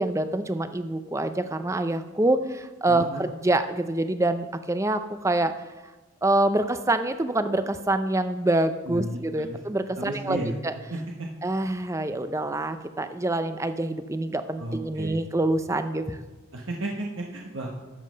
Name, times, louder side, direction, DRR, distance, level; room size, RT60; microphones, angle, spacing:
voice 1, 0.0-5.5 6.2-10.7 11.4-16.2, right 2 dB, 15° right, 10 dB, 0.5 m, -26 dB
voice 2, 2.9-3.2 8.9-9.6 10.0-10.5 10.9-11.3 14.6-15.2 16.5-17.7, right 1 dB, 65° right, 0 dB, 1.1 m, -33 dB
12.0 x 7.5 x 5.1 m, 1.2 s
head